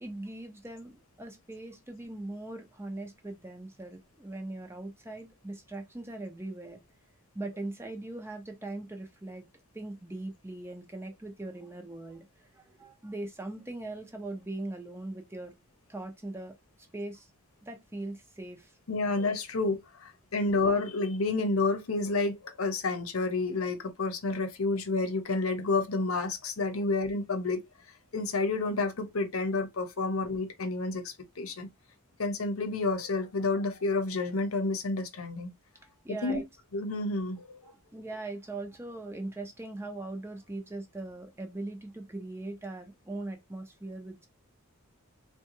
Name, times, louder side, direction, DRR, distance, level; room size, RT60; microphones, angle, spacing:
voice 1, 0.0-6.8 7.3-9.4 9.7-12.3 12.5-15.5 15.9-16.5 16.9-17.3 17.6-18.7 36.0-36.4 37.6-44.3, right 2 dB, 10° right, 0.6 m, -40 dB
voice 2, 18.9-27.7 28.1-31.7 32.2-35.5 36.1-36.4 36.7-37.6, left 3 dB, 75° left, 0.7 m, -30 dB
3.6 x 2.2 x 2.9 m
head